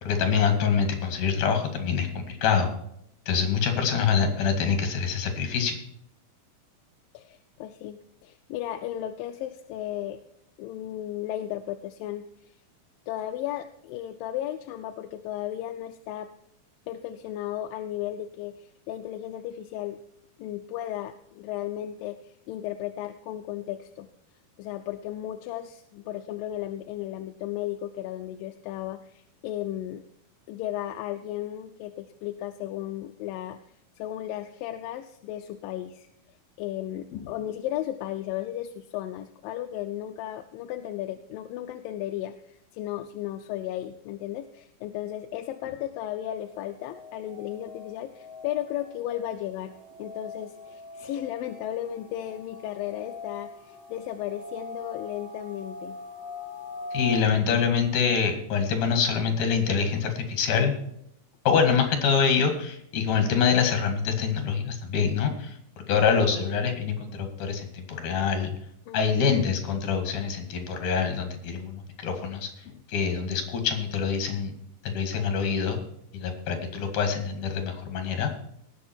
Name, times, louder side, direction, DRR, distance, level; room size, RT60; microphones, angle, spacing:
voice 1, 0.0-2.7 3.3-5.8 56.9-60.7 61.5-65.6 65.9-68.5 68.9-72.5 72.9-74.5 74.8-75.8 76.1-78.3, left 6 dB, 60° left, 5 dB, 3.5 m, -25 dB
voice 2, 7.1-10.2 10.6-12.5 13.1-16.3 16.9-20.0 20.4-24.1 24.6-30.0 30.5-33.6 34.0-36.1 36.6-49.7 50.0-56.0 68.9-69.3 72.7-72.8, left 12 dB, 80° left, 6 dB, 2.2 m, -35 dB
sound 1, 46.3-57.2, left 3 dB, 5° left, 4.4 m, -42 dB
18.5 x 7.0 x 4.5 m, 0.74 s
omnidirectional pair, 4.3 m